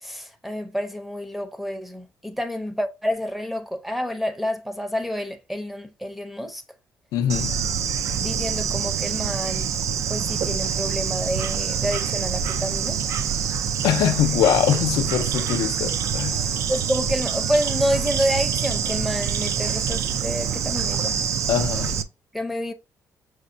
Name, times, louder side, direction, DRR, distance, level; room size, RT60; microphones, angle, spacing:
voice 1, 0.0-6.6 8.2-9.7 10.1-13.0 16.7-21.2 22.3-22.7, equal, ahead, 0.6 m, -28 dB
voice 2, 7.1-7.6 13.8-16.5 21.5-22.0, left 10 dB, 85° left, 0.5 m, -23 dB
Bird / Insect, 7.3-22.0, right 7 dB, 55° right, 0.4 m, -25 dB
6.1 x 2.1 x 2.6 m
cardioid pair, 125°, 6 cm